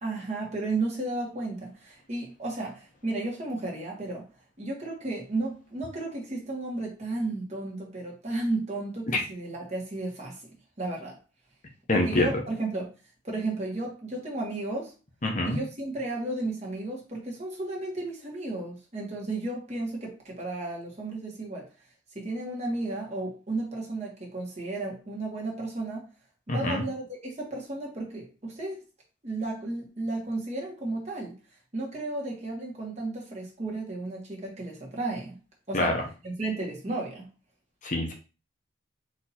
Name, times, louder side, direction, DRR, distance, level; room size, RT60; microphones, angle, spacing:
voice 1, 0.0-4.3 4.6-10.5 10.8-11.2 11.9-12.9 13.2-14.9 15.4-21.7 22.1-26.1 26.5-28.8 29.2-31.3 31.7-35.3 35.7-36.0 36.2-37.3, right 2 dB, 35° right, -2 dB, 1.3 m, -33 dB
voice 2, 11.9-12.3 15.2-15.6 26.5-26.8 35.7-36.0 37.8-38.1, left 2 dB, 40° left, 2 dB, 0.8 m, -25 dB
4.3 x 2.8 x 4.2 m, 0.32 s
head